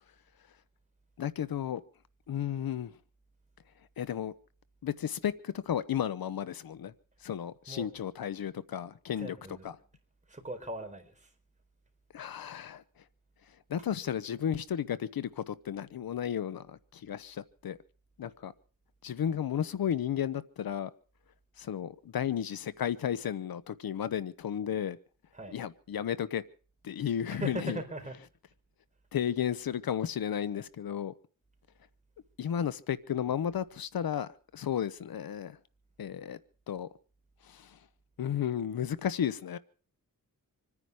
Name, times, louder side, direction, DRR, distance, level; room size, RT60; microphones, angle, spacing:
voice 1, 1.2-1.8 2.3-3.0 4.0-4.3 4.8-6.9 7.2-9.4 9.6-9.7 12.1-13.0 13.7-17.8 18.2-18.5 19.0-20.9 21.6-25.0 25.5-26.4 26.8-27.8 29.1-31.1 32.4-35.6 36.0-36.4 36.7-36.9 37.4-37.8 38.2-39.6, left 9 dB, 90° left, 0.8 m, -33 dB
voice 2, 9.1-9.8 10.3-11.3 13.8-13.9 25.3-25.6 27.3-28.2, right 1 dB, 20° right, 4.2 m, -40 dB
26.5 x 9.9 x 4.8 m
cardioid pair, 75°, 34 cm